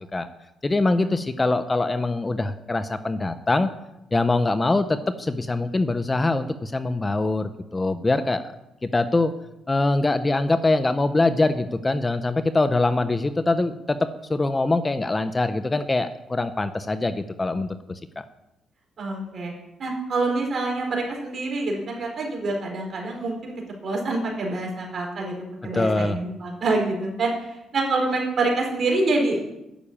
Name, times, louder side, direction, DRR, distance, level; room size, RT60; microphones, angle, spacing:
voice 1, 0.6-3.7 4.1-8.4 8.8-9.3 9.7-18.2 25.7-26.2, left 2 dB, 20° left, 11 dB, 0.7 m, -23 dB
voice 2, 19.0-19.5 19.8-23.5 23.8-25.4 25.6-29.6, right 2 dB, 50° right, 0 dB, 4.2 m, -26 dB
10.5 x 6.8 x 8.6 m, 0.90 s
cardioid pair, 90°, 0 cm